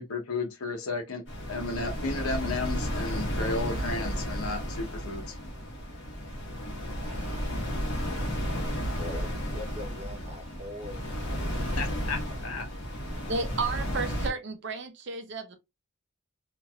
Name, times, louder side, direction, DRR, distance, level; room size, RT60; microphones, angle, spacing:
voice 1, 0.0-5.3 11.8-12.7, left 3 dB, 90° left, 0.9 m, -33 dB
sound 1, 1.3-14.3, equal, 55° left, 1.2 m, -33 dB
voice 2, 7.0-7.9 9.0-11.4 12.4-12.5, left 1 dB, 30° right, 0.8 m, -43 dB
voice 3, 13.3-15.6, right 4 dB, 55° right, 0.6 m, -32 dB
3.1 x 2.6 x 2.3 m
head